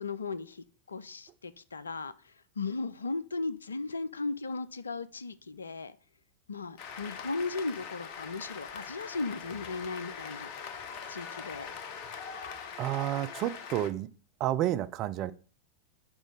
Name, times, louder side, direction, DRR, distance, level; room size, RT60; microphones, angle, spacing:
voice 1, 0.0-6.0 6.5-10.8 11.1-11.7, left 3 dB, 75° left, 0.4 m, -37 dB
Cheering / Applause, 6.8-13.9, left 6 dB, 45° left, 0.8 m, -42 dB
voice 2, 12.8-14.1 14.4-15.3, right 13 dB, 35° right, 0.4 m, -30 dB
6.2 x 5.0 x 4.9 m
figure-of-eight pair, 90°, 0 cm